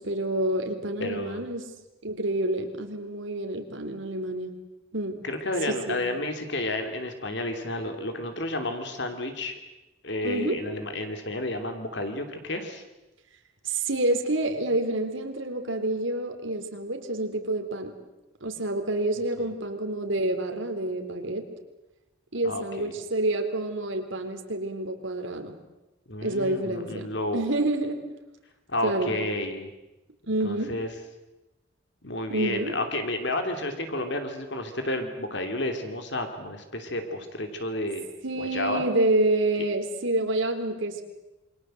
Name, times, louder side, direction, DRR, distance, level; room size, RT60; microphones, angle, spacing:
voice 1, 0.0-1.6 2.0-4.5 4.9-5.2 5.7-6.0 10.2-10.6 13.6-17.9 18.4-21.4 22.3-25.6 26.2-28.0 28.8-29.1 30.3-30.7 32.3-32.7 38.2-41.0, right 1 dB, 70° right, 6 dB, 3.4 m, -28 dB
voice 2, 1.0-1.4 5.2-9.5 10.0-12.8 22.4-22.9 26.1-27.4 28.7-29.7 30.4-30.9 32.0-38.1 38.4-38.8, left 1 dB, 55° left, 6 dB, 3.0 m, -31 dB
27.5 x 24.0 x 7.8 m, 1.0 s
head